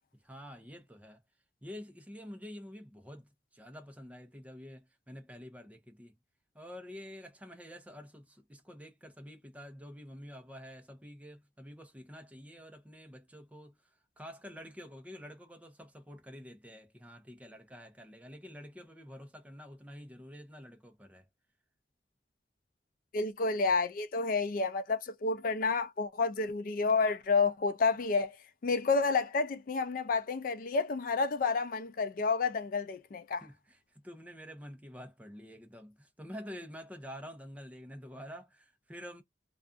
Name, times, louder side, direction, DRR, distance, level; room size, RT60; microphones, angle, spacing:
voice 1, 0.2-1.2 1.6-6.1 6.5-13.8 14.2-21.2 33.4-33.8 34.0-39.2, equal, 10° right, 0.6 m, -48 dB
voice 2, 23.1-28.4 28.6-33.4, left 4 dB, 50° left, 0.4 m, -30 dB
2.4 x 2.4 x 2.4 m
head